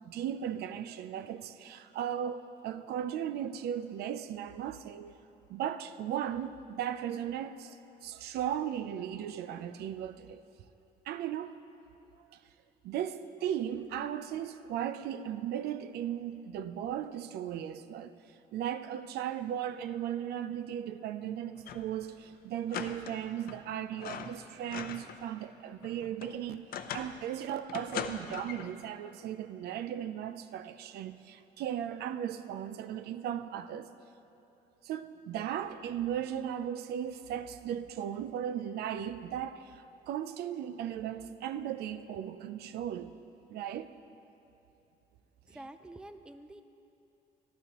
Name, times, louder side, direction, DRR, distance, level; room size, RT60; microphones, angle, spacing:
voice 1, 0.1-5.2 5.5-7.8 8.0-10.4 11.1-11.6 12.3-12.4 12.8-18.2 18.5-26.7 26.9-33.9 34.8-43.1 43.5-43.9, right 10 dB, 70° right, 0.5 m, -37 dB
sound 1, 21.6-22.0 22.2-22.3 22.7-23.6 23.9-25.2 25.6-27.2 27.7-28.7, left 8 dB, 60° left, 0.6 m, -41 dB
voice 2, 45.5-46.6, right 1 dB, 5° right, 0.4 m, -48 dB
14.5 x 12.0 x 3.0 m
cardioid pair, 110°, 17 cm